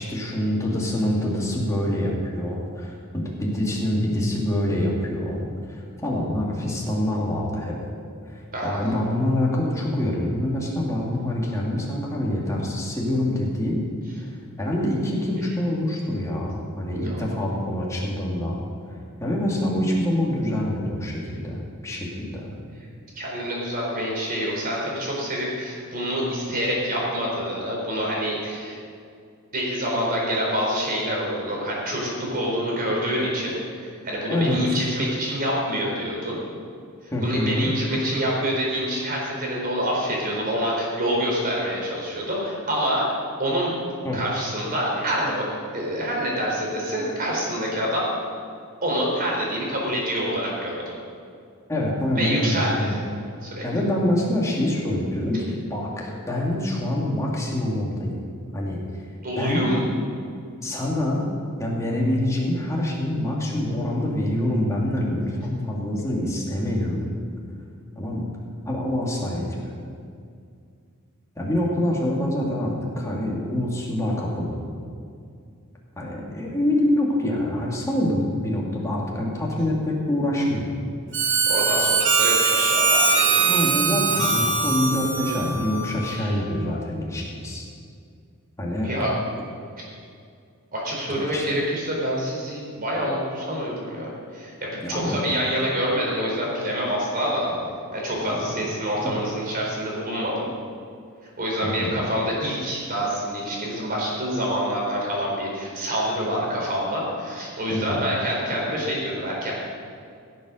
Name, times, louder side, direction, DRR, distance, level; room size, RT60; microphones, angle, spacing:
voice 1, 0.0-7.7 8.3-13.8 14.2-14.3 14.6-18.6 19.2-22.5 34.3-34.8 37.1-37.7 44.0-44.2 51.7-53.0 53.6-58.2 58.5-58.8 59.4-59.7 60.6-61.3 61.6-67.1 67.9-68.2 68.7-69.8 71.4-74.6 76.0-80.8 83.4-87.6 88.6-88.9 91.1-91.6 94.8-95.2 98.2-98.6 99.0-99.2 101.6-102.0 107.7-108.0, left 1 dB, 15° left, -3 dB, 2.4 m, -25 dB
voice 2, 23.2-28.8 29.5-36.4 37.0-43.1 43.4-43.7 44.1-45.4 45.7-48.1 48.8-50.9 52.1-53.0 53.4-53.6 59.2-59.8 81.5-83.5 86.1-86.3 88.8-89.1 90.7-97.5 97.9-100.5 101.4-109.5, equal, 40° right, -3 dB, 4.0 m, -26 dB
Harmonica, 81.1-86.3, right 4 dB, 60° right, 1.9 m, -22 dB
16.0 x 7.7 x 6.4 m, 2.3 s
head